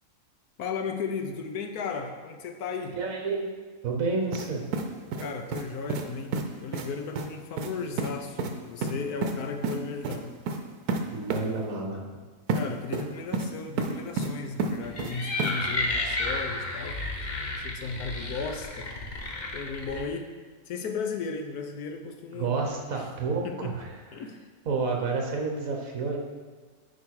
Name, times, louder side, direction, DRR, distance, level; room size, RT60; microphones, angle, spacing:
voice 1, 0.6-3.0 5.2-10.3 12.5-17.0 17.6-18.9 19.5-20.3 20.7-22.5 22.9-23.1 23.4-23.7 24.1-24.4, left 5 dB, 80° left, 5 dB, 1.3 m, -35 dB
voice 2, 3.0-3.5 3.8-4.6 11.1-12.0 22.3-23.9 24.6-26.2, right 4 dB, 65° right, 1 dB, 1.6 m, -29 dB
sound 1, 4.3-4.5 4.7-5.6 5.9-6.1 6.3-6.4 6.7-6.9 7.2-7.3 7.6-7.7 8.0-8.1 8.4-8.5 8.8-9.3 9.6-9.8 10.0-10.2 10.5-10.6 10.9-11.0 11.3-11.4 12.5-12.6 12.9-13.5 13.8-14.3 14.6-15.1 15.4-15.5, right 4 dB, 80° right, 1.2 m, -29 dB
sound 2, 14.8-20.0, left 2 dB, 35° left, 0.9 m, -32 dB
9.4 x 4.9 x 4.7 m, 1.5 s
omnidirectional pair, 1.6 m